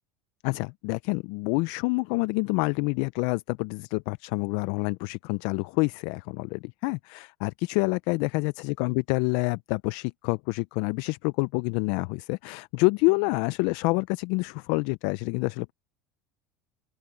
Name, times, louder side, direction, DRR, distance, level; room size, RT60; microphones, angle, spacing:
voice 1, 0.4-15.7, left 27 dB, 65° left, 0.4 m, -27 dB
open air
supercardioid pair, 140°, 8 cm